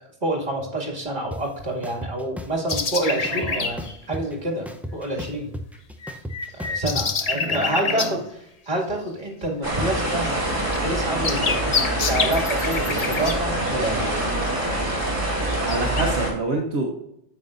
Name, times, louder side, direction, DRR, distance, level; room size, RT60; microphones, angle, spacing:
voice 1, 0.2-5.6 6.5-8.2 8.7-10.3 10.8-14.0, right 1 dB, 45° right, -2 dB, 2.4 m, -28 dB
sound 1, 1.3-1.4 1.8-2.8 3.2-4.3 4.7-7.1, equal, ahead, 0.4 m, -34 dB
sound 2, 2.7-3.9 6.0-8.1 10.4-10.5 10.7-14.1 14.6-14.8 15.5-16.0, left 4 dB, 40° left, 0.8 m, -27 dB
voice 2, 3.3-3.7 7.3-8.2 15.6-16.9, right 2 dB, 70° right, -1 dB, 1.3 m, -28 dB
sound 3, 9.6-16.3, right 1 dB, 20° right, 2.4 m, -25 dB
9.2 x 7.5 x 2.5 m, 0.79 s
omnidirectional pair, 1.1 m